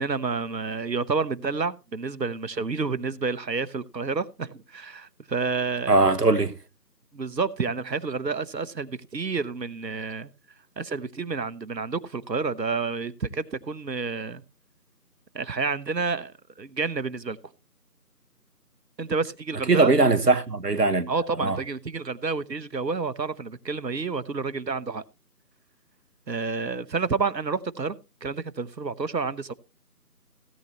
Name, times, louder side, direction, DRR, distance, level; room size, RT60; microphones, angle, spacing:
voice 1, 0.0-6.1 7.1-10.3 10.8-14.4 15.3-17.4 19.0-19.9 21.1-25.0 26.3-29.5, right 4 dB, 90° right, 0.9 m, -29 dB
voice 2, 5.9-6.5 19.7-21.1 21.4-21.6, right 3 dB, 70° right, 1.2 m, -20 dB
17.0 x 8.0 x 2.9 m
figure-of-eight pair, 175°, 49 cm